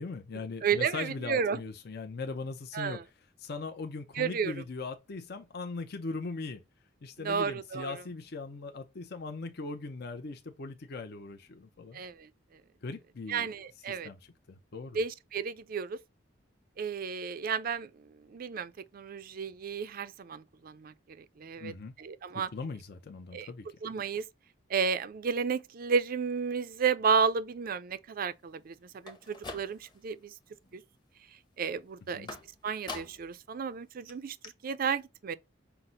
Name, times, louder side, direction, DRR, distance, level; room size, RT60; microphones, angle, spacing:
voice 1, 0.0-3.0 3.4-6.6 7.0-12.0 12.8-13.5 13.9-14.2 14.5-15.0 21.6-21.9 22.5-23.7 32.0-32.3, left 3 dB, 55° left, 0.6 m, -39 dB
voice 2, 0.6-1.6 2.7-3.0 4.2-4.5 7.2-7.9 11.9-12.3 13.3-14.1 14.9-16.0 16.8-17.9 18.3-21.7 22.0-22.5 23.3-23.5 23.8-24.2 24.7-28.8 29.0-30.3 30.7-30.8 31.6-32.3 32.6-34.4 34.6-35.3, right 6 dB, 50° right, 0.4 m, -32 dB
sound 1, 28.9-30.1 30.5-31.0 32.3-33.4 33.7-33.8 34.1-34.2 34.4-34.5, left 3 dB, 25° left, 0.9 m, -44 dB
5.8 x 2.0 x 3.7 m
head